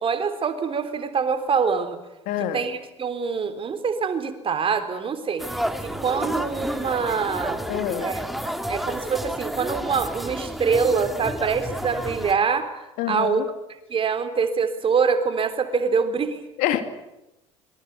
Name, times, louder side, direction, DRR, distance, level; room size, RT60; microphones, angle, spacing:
voice 1, 0.0-2.0 2.5-7.6 8.0-12.7 13.1-13.4 13.9-16.4, right 5 dB, 35° right, 9 dB, 3.6 m, -25 dB
voice 2, 2.3-2.6 7.7-8.1 13.0-13.4 16.6-16.8, left 11 dB, 60° left, 9 dB, 2.5 m, -26 dB
sound 1, 5.4-12.3, equal, ahead, 2.7 m, -30 dB
26.5 x 23.0 x 8.3 m, 0.95 s
hypercardioid pair, 65°, 15 cm